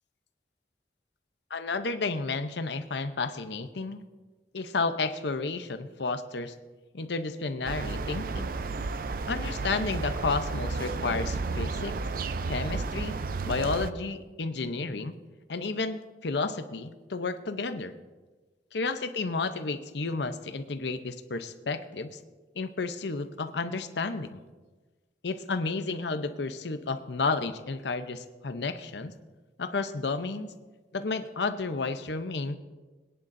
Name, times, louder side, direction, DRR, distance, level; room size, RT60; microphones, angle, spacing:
voice 1, 1.5-4.0 4.5-6.5 6.9-8.5 9.3-11.9 12.5-13.2 13.4-15.1 15.5-17.9 18.7-22.2 22.5-24.4 25.2-29.1 29.6-30.5 30.9-32.6, left 3 dB, 75° left, 9 dB, 0.7 m, -32 dB
sound 1, 7.6-13.9, right 3 dB, 50° right, 0.4 m, -32 dB
21.5 x 10.5 x 2.6 m, 1.3 s
head